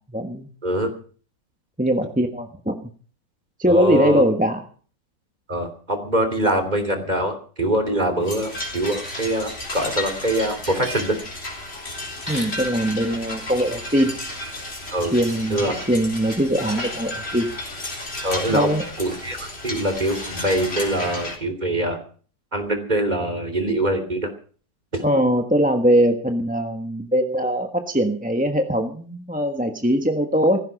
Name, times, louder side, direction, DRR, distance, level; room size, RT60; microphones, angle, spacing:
voice 1, 0.1-0.5 1.8-2.8 3.6-4.6 12.3-14.2 15.1-17.5 18.5-18.8 25.0-30.6, equal, 5° right, 5 dB, 1.0 m, -21 dB
voice 2, 3.7-4.2 5.5-11.2 12.3-12.5 14.9-15.1 15.5-15.8 18.2-22.0 22.5-24.3 24.9-25.0, right 1 dB, 25° right, 7 dB, 3.2 m, -24 dB
sound 1, 8.2-21.4, left 1 dB, 35° left, 4.0 m, -33 dB
16.5 x 15.0 x 5.2 m, 0.42 s
omnidirectional pair, 1.9 m